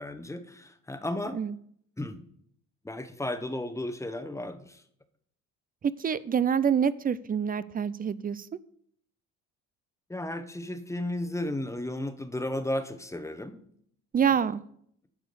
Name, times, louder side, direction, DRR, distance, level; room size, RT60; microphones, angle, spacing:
voice 1, 0.0-1.4 2.0-2.2 2.8-4.8 10.1-13.6 14.2-14.4, left 1 dB, 10° left, 9 dB, 1.0 m, -34 dB
voice 2, 6.0-8.4 14.1-14.6, right 7 dB, 25° right, 18 dB, 0.5 m, -26 dB
10.5 x 4.8 x 6.9 m, 0.67 s
supercardioid pair, 75°, 33 cm